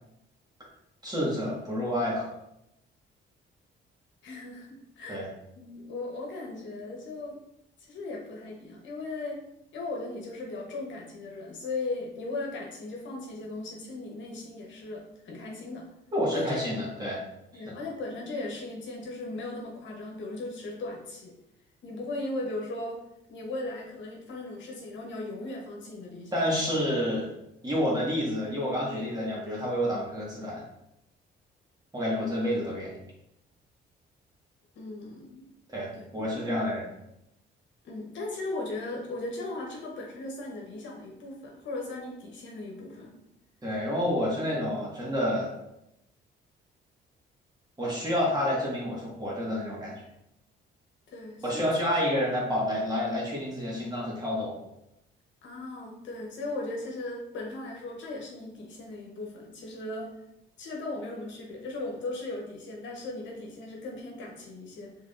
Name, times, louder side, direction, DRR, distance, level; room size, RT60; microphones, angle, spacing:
voice 1, 1.0-2.3 5.1-5.3 16.1-17.2 17.5-17.6 26.3-27.3 27.6-30.6 31.9-33.0 35.7-36.9 43.6-45.5 47.8-49.9 51.4-54.5, equal, 20° right, -5 dB, 1.5 m, -29 dB
voice 2, 4.2-5.3 5.6-7.4 7.8-9.4 9.7-15.9 16.3-16.9 17.5-21.3 21.8-23.0 23.3-26.4 34.7-35.4 35.9-36.5 37.8-43.1 44.4-44.5 51.1-51.7 55.4-60.2 60.6-65.0, left 2 dB, 70° left, -1 dB, 1.1 m, -37 dB
4.9 x 3.5 x 2.5 m, 0.83 s
cardioid pair, 90°, 20 cm